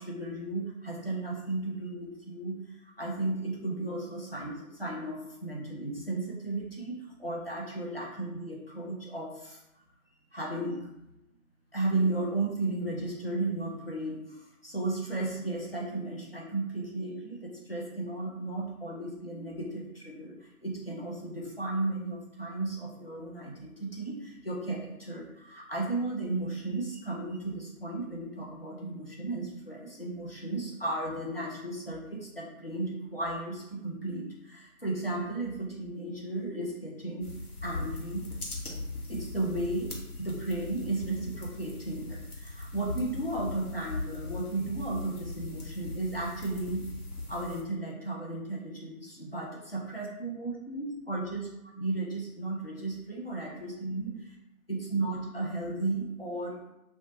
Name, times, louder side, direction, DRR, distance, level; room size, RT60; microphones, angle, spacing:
voice 1, 0.0-2.6 2.8-9.6 10.3-10.9 11.7-37.3 37.6-38.3 39.1-46.9 47.3-51.5 51.8-54.2 54.7-56.6, right 2 dB, 45° left, -3 dB, 0.5 m, -34 dB
sound 1, 37.2-47.6, left 2 dB, 90° left, 0.9 m, -39 dB
2.9 x 2.1 x 2.6 m, 0.87 s
figure-of-eight pair, 170°, 43 cm